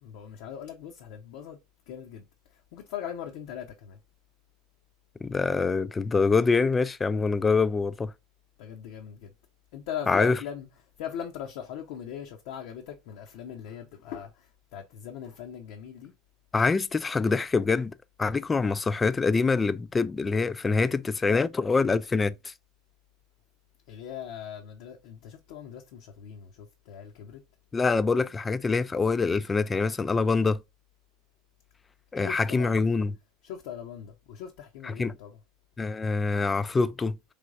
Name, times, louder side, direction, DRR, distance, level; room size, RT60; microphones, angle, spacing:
voice 1, 0.0-1.6 1.9-2.2 2.5-4.0 8.6-9.3 9.7-10.7 11.0-16.1 23.9-27.4 32.1-32.8 33.4-35.4, left 9 dB, 60° left, 0.7 m, -40 dB
voice 2, 5.2-8.1 10.1-10.4 16.5-17.9 18.2-22.5 27.7-30.6 32.1-33.1 34.8-35.1 35.8-37.2, left 4 dB, 20° left, 0.4 m, -25 dB
5.0 x 3.0 x 2.5 m
figure-of-eight pair, 80°, 0 cm